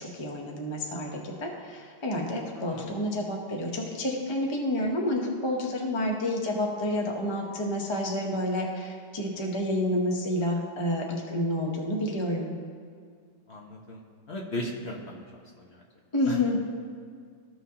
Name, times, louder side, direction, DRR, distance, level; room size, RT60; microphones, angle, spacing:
voice 1, 0.0-12.5 16.1-16.6, left 1 dB, 30° left, 0 dB, 0.5 m, -29 dB
voice 2, 2.5-3.0 13.5-14.0 14.3-15.2 15.6-15.7 16.3-16.4, left 1 dB, 50° left, -1 dB, 0.9 m, -36 dB
14.0 x 6.0 x 2.8 m, 2.1 s
omnidirectional pair, 1.9 m